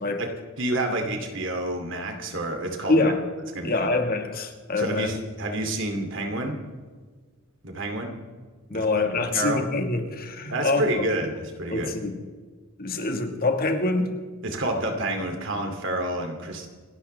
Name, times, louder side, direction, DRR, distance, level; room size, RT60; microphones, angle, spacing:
voice 1, 0.6-3.1 3.5-3.9 4.8-6.6 7.6-8.2 8.7-9.1 9.3-9.6 10.5-11.9 14.4-16.7, right 1 dB, 60° right, 4 dB, 2.6 m, -29 dB
voice 2, 2.9-3.2 3.6-5.1 8.7-11.1 11.7-12.2 12.8-14.1, left 3 dB, 45° left, 6 dB, 1.6 m, -25 dB
27.0 x 12.5 x 3.3 m, 1.5 s
head